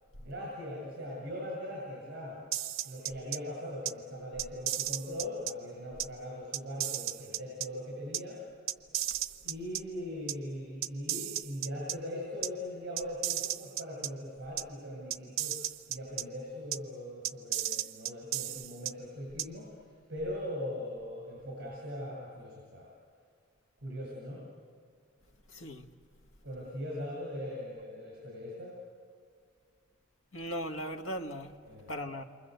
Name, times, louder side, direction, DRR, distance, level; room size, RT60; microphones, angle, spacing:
voice 1, 0.2-2.4 2.8-8.4 9.4-15.6 15.9-19.8 20.1-22.9 23.8-24.4 26.4-28.8 31.6-31.9, left 1 dB, 55° right, 7.6 m, -40 dB
sound 1, 2.5-3.4 3.9-4.0 4.4-5.5 6.0-6.1 6.5-7.7 8.1-8.2 8.7-9.8 10.3-10.4 10.8-12.0 12.4-12.5 13.0-14.1 14.6-14.7 15.1-16.2 16.7-16.8 17.2-18.9 19.4-19.5, right 12 dB, 75° right, 0.8 m, -34 dB
voice 2, 25.5-25.9 30.3-31.5 31.9-32.2, equal, 70° left, 1.8 m, -38 dB
28.5 x 24.5 x 8.2 m
head